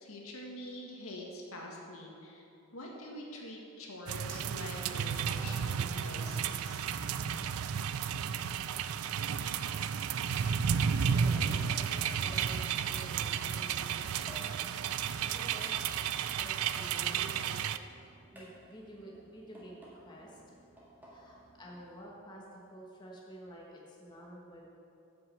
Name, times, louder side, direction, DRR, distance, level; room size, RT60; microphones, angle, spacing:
voice 1, 0.0-2.5 2.7-6.9, left 1 dB, 80° left, -1 dB, 1.8 m, -45 dB
sound 1, 4.1-17.8, right 7 dB, 90° right, 0.4 m, -33 dB
sound 2, 9.3-22.0, right 1 dB, 10° right, 1.8 m, -56 dB
voice 2, 10.7-14.8 15.2-15.7 16.4-17.6 18.3-20.6 21.0-24.7, right 1 dB, 20° left, -3 dB, 1.4 m, -50 dB
9.5 x 6.2 x 7.8 m, 2.7 s
head